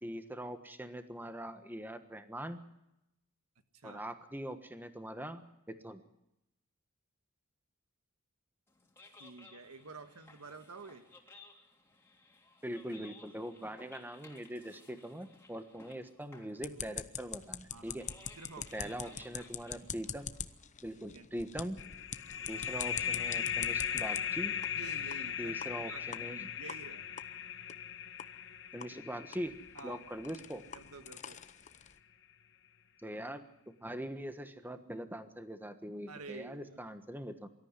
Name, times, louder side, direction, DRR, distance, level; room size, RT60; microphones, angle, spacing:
voice 1, 0.0-2.6 3.8-6.0 12.6-18.0 18.7-20.3 20.8-21.8 22.5-24.6 25.4-26.5 28.7-29.6 29.8-30.6 33.0-33.4 33.8-37.5, equal, 10° right, 9 dB, 1.3 m, -42 dB
sound 1, 8.7-20.9, left 3 dB, 10° left, 3.1 m, -59 dB
voice 2, 9.2-11.0 17.7-18.0 18.4-19.2 21.1-21.3 24.7-25.6 25.9-26.0 26.6-27.1 29.7-30.0 30.7-31.4 36.1-36.9, right 4 dB, 80° right, 9 dB, 1.6 m, -49 dB
sound 2, 16.6-24.2 24.6-24.7 25.1-25.2 25.6-25.7 26.1-26.2 26.7-26.8 27.2-27.3 27.7-27.8 28.2-28.3 28.8-28.9 29.3-32.0, left 8 dB, 35° left, 0.8 m, -44 dB
sound 3, 21.8-31.1, left 8 dB, 60° left, 1.3 m, -38 dB
24.0 x 13.5 x 9.8 m, 0.87 s
head